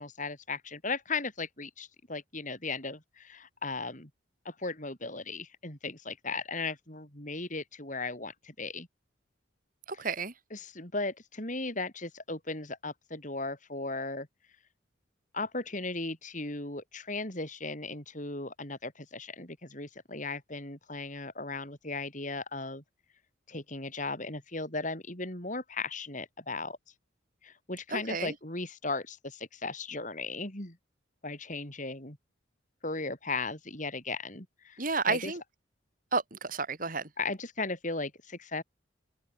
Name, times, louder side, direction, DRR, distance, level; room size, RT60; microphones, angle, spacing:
voice 1, 0.0-4.1 4.5-8.9 9.9-10.0 10.5-14.3 15.3-22.8 23.5-26.8 27.4-30.8 31.2-32.2 32.8-34.8 35.1-35.3 37.2-38.6, left 3 dB, 40° left, 5.5 m, -37 dB
voice 2, 10.0-10.3 27.9-28.3 34.8-35.4 36.1-37.0, right 4 dB, 45° right, 3.6 m, -31 dB
head